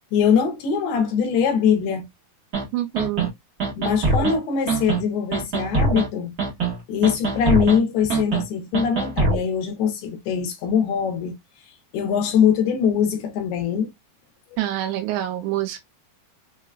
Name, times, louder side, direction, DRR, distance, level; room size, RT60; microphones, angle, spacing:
voice 1, 0.1-2.1 3.8-6.3 6.9-11.4 11.9-13.9, left 7 dB, 75° left, 2.6 m, -22 dB
sound 1, 2.5-2.6 2.9-3.3 3.6-4.3 4.7-5.0 5.3-6.1 6.4-6.8 7.0-7.8 8.1-8.4 8.7-9.4, right 3 dB, 65° right, 0.9 m, -22 dB
voice 2, 2.7-3.3 14.6-15.8, right 13 dB, 85° right, 2.9 m, -26 dB
6.4 x 2.2 x 2.3 m
omnidirectional pair, 5.0 m